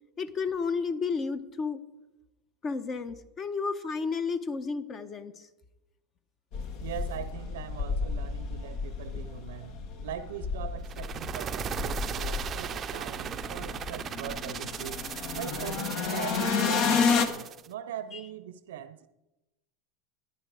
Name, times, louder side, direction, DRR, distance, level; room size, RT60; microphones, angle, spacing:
voice 1, 0.2-1.8 2.6-5.5 9.1-9.3 18.1-18.2, left 5 dB, 35° left, 12 dB, 1.1 m, -32 dB
sound 1, 6.5-17.3, left 5 dB, 60° left, 1.4 m, -31 dB
voice 2, 6.8-15.1 15.3-19.1, right 10 dB, 85° right, 13 dB, 0.6 m, -41 dB
sound 2, 10.8-17.7, right 9 dB, 35° right, 0.5 m, -37 dB
15.0 x 10.5 x 5.0 m, 1.0 s
supercardioid pair, 110°, 0 cm